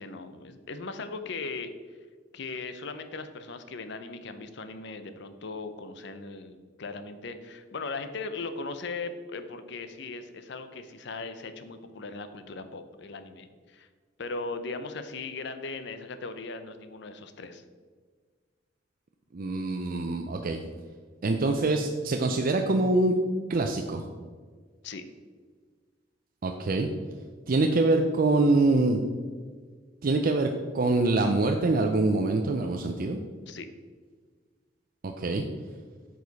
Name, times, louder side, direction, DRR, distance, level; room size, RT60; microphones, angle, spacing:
voice 1, 0.0-1.7 2.3-13.9 14.2-17.6 24.8-25.0 33.5-33.7, left 3 dB, 65° left, 10 dB, 0.6 m, -38 dB
voice 2, 19.3-20.6 21.2-23.2 23.5-24.0 26.4-26.9 27.5-29.0 30.0-33.2 35.0-35.4, right 2 dB, 50° right, 4 dB, 0.5 m, -25 dB
8.9 x 4.9 x 4.0 m, 1.5 s
head